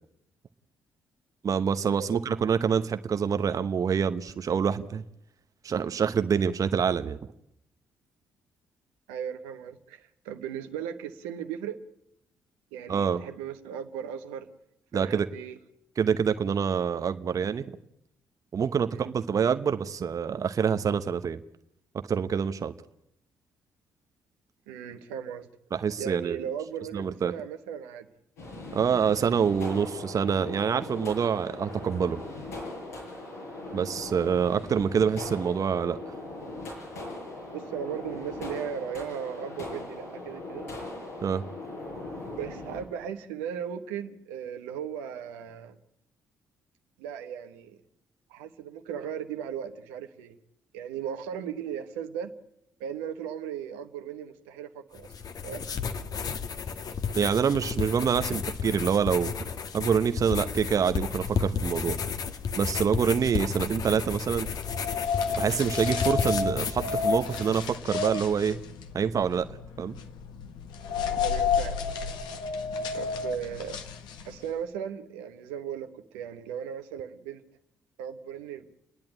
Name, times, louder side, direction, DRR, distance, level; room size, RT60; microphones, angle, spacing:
voice 1, 1.4-5.0 5.6-7.2 12.9-13.2 14.9-15.3 16.0-17.8 18.5-21.4 22.1-22.7 25.7-26.4 26.9-27.3 28.7-32.2 33.7-36.0 41.2-41.4 57.1-59.3 59.7-62.0 62.6-64.5 65.4-68.6 68.9-69.5 69.8-70.0, right 7 dB, 45° right, 9 dB, 1.0 m, -26 dB
voice 2, 9.1-11.8 12.7-14.5 14.9-15.6 18.9-19.1 24.7-25.5 26.0-28.1 33.7-33.9 37.5-40.7 42.4-45.8 47.0-47.8 48.3-50.3 50.7-52.3 52.8-55.1 55.4-55.6 71.1-71.9 72.9-73.8 74.2-77.4 78.0-78.7, right 8 dB, 80° right, 6 dB, 1.2 m, -37 dB
sound 1, 28.4-42.8, left 2 dB, 85° left, 6.7 m, -40 dB
sound 2, 55.0-67.7, left 6 dB, 55° left, 1.4 m, -33 dB
sound 3, 64.5-74.5, left 5 dB, 70° left, 1.5 m, -31 dB
29.0 x 10.5 x 8.9 m, 0.78 s
hypercardioid pair, 45°, 8 cm